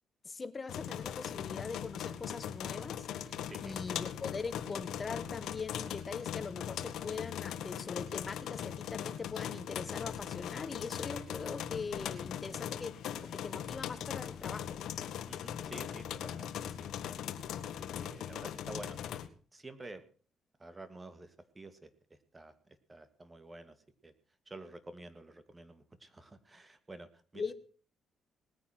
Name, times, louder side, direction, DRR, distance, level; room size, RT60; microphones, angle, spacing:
voice 1, 0.2-13.0 13.2-14.9 27.3-27.5, left 4 dB, 35° left, 13 dB, 1.5 m, -42 dB
sound 1, 0.7-19.3, left 9 dB, 75° left, 1.4 m, -40 dB
voice 2, 3.4-3.8 15.3-16.9 17.6-19.2 19.5-20.1 20.6-23.8 24.0-24.1 24.5-27.5, right 2 dB, 20° right, 11 dB, 2.1 m, -50 dB
19.5 x 9.6 x 6.0 m, 0.42 s
cardioid pair, 90°, 0 cm